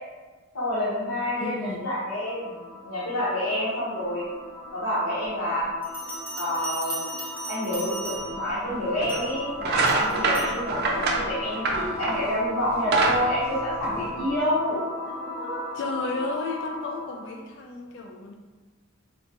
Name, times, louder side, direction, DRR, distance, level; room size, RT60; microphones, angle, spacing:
voice 1, 0.5-2.5 2.8-4.2 4.7-5.7 6.4-7.1 7.5-15.6, left 1 dB, 90° left, -10 dB, 1.0 m, -28 dB
sound 1, 1.2-17.3, left 2 dB, 40° left, 1.1 m, -37 dB
voice 2, 1.4-1.8 15.7-18.3, left 3 dB, 60° left, 2 dB, 0.3 m, -33 dB
Bell, 5.8-8.5 9.1-9.4 9.9-10.6, right 3 dB, 10° right, 0.9 m, -37 dB
sound 2, 8.3-8.4 9.0-9.2 9.6-12.3 12.7-14.3, right 3 dB, 50° right, 0.5 m, -25 dB
3.9 x 2.2 x 2.8 m, 1.3 s
head